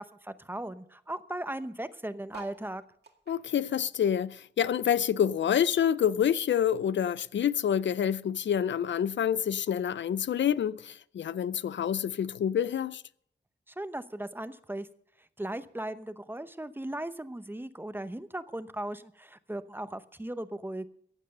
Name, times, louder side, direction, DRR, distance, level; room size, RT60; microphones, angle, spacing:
voice 1, 0.0-2.8 13.7-14.9 15.4-20.9, right 1 dB, 10° right, 0.7 m, -37 dB
sound 1, 2.3-5.0 5.4-6.9 7.4-7.5 7.6-7.7 7.9-8.3 9.1-9.2, right 6 dB, 65° right, 2.1 m, -53 dB
voice 2, 3.3-13.0, left 9 dB, 85° left, 0.4 m, -27 dB
15.0 x 9.2 x 6.7 m
wide cardioid pair, 125°, 18 cm